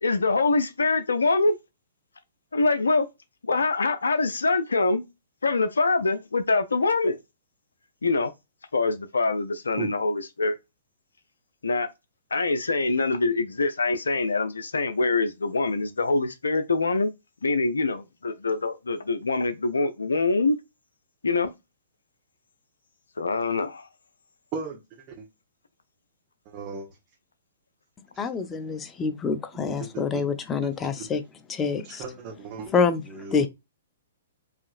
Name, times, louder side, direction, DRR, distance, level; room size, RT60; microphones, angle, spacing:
voice 1, 0.0-1.6 2.5-3.1 3.4-5.0 5.4-7.2 8.0-8.3 8.7-10.6 11.6-11.9 12.3-17.1 17.4-20.6 21.2-21.5 23.2-23.9, left 3 dB, 80° left, 0.5 m, -24 dB
voice 2, 26.4-26.9 29.7-30.2 30.6-30.7 31.0-31.1 31.8-33.5, right 5 dB, 35° right, 1.2 m, -36 dB
voice 3, 28.2-31.2 31.5-32.0 32.7-33.0 33.3-33.5, left 5 dB, 20° left, 0.7 m, -26 dB
5.0 x 2.9 x 2.4 m
figure-of-eight pair, 120°, 0 cm